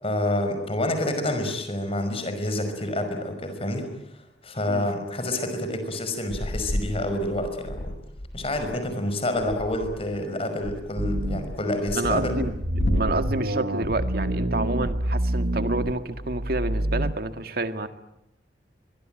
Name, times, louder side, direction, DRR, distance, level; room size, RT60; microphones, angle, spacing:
voice 1, 0.0-3.9 4.4-7.9 8.3-12.3, left 1 dB, 35° left, 7 dB, 5.5 m, -28 dB
sound 1, 6.3-8.8 9.3-10.2 10.6-14.7, equal, 85° left, 1.9 m, -32 dB
sound 2, 11.0-11.6 12.0-17.1, right 1 dB, 85° right, 1.7 m, -28 dB
voice 2, 11.9-17.9, right 2 dB, 60° right, 9 dB, 1.9 m, -29 dB
24.0 x 23.5 x 9.1 m, 0.89 s
head